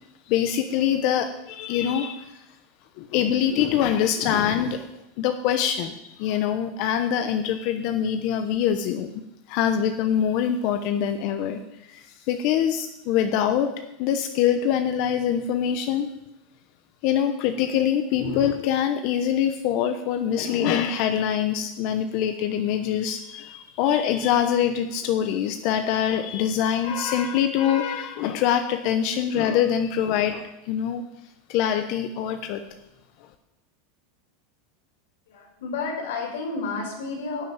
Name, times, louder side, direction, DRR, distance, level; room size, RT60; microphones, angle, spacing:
voice 1, 0.3-2.4 3.0-4.9 5.2-9.1 9.5-11.6 11.9-13.7 14.0-16.1 17.0-31.0 31.5-32.6, left 9 dB, 55° left, 7 dB, 1.0 m, -24 dB
voice 2, 35.3-37.4, left 4 dB, 85° left, 0 dB, 4.9 m, -31 dB
11.5 x 6.2 x 9.0 m, 0.87 s
supercardioid pair, 135°, 0 cm